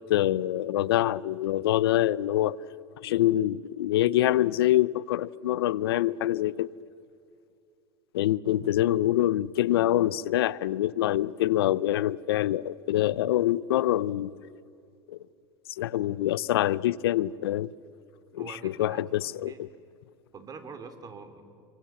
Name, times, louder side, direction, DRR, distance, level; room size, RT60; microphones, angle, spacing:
voice 1, 0.1-2.6 3.0-6.7 8.1-14.3 15.1-15.2 15.7-17.7 18.3-19.7, left 13 dB, 85° left, 0.6 m, -25 dB
voice 2, 18.4-19.6 20.3-21.4, right 4 dB, 30° right, 3.5 m, -44 dB
28.0 x 23.5 x 7.2 m
hypercardioid pair, 95°, 12 cm